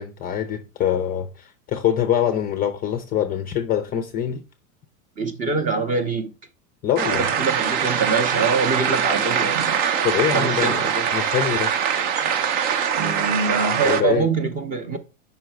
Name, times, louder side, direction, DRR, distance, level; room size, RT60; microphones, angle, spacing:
voice 1, 0.0-4.4 6.8-7.2 10.0-10.9 11.1-11.7 13.8-14.3, left 10 dB, 20° left, 0.4 m, -24 dB
voice 2, 5.2-6.3 7.1-9.8 10.3-11.1 13.0-15.0, right 4 dB, 20° right, 0.6 m, -24 dB
sound 1, 7.0-14.0, right 7 dB, 50° right, 0.8 m, -23 dB
sound 2, 7.5-12.9, right 7 dB, 75° right, 1.1 m, -35 dB
5.6 x 3.9 x 4.6 m
supercardioid pair, 135°, 42 cm